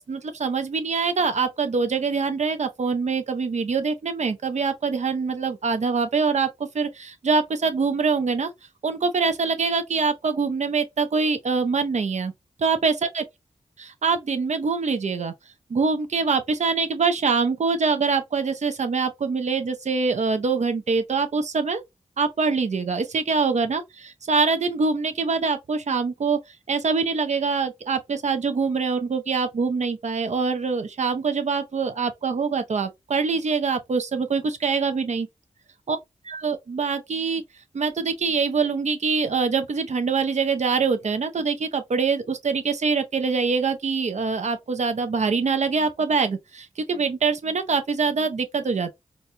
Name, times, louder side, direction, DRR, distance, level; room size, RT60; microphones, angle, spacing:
voice 1, 0.0-8.5 8.8-12.3 12.6-13.2 13.8-15.3 15.7-21.8 22.2-35.3 35.9-36.0 36.3-37.4 37.7-48.9, right 4 dB, 65° right, 0.7 m, -24 dB
4.0 x 2.3 x 2.6 m
cardioid pair, 45°, 13 cm